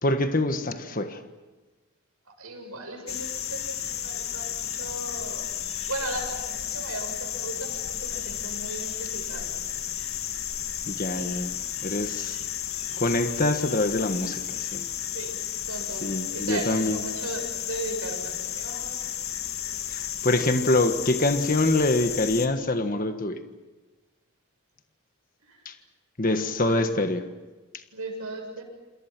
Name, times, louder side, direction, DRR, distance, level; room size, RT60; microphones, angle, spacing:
voice 1, 0.0-1.2 10.9-11.5 11.8-12.4 13.0-14.9 16.0-17.0 19.9-23.4 25.6-25.7 26.2-27.2, left 2 dB, 40° left, 7 dB, 1.5 m, -25 dB
voice 2, 2.4-5.5 5.9-9.8 15.0-15.3 15.7-19.2 25.4-25.6 26.4-26.8 27.9-28.6, right 2 dB, 90° right, 3 dB, 7.3 m, -37 dB
sound 1, 3.1-22.5, left 10 dB, 70° left, 2.0 m, -33 dB
27.5 x 27.5 x 6.1 m, 1.2 s
head